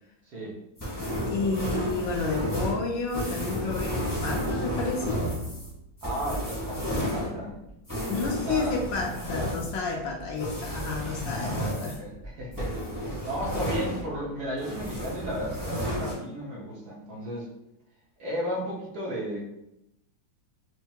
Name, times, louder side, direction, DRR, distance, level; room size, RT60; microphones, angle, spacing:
voice 1, 0.3-0.6 6.0-7.5 8.1-8.2 8.5-8.7 11.3-17.5 18.2-19.5, equal, 60° right, -5 dB, 1.4 m, -34 dB
sound 1, 0.8-14.3 14.6-16.1, equal, 20° left, 0.6 m, -32 dB
voice 2, 1.3-5.3 8.1-11.9, left 4 dB, 75° left, 0 dB, 1.2 m, -31 dB
4.5 x 2.5 x 2.8 m, 0.84 s
omnidirectional pair, 2.2 m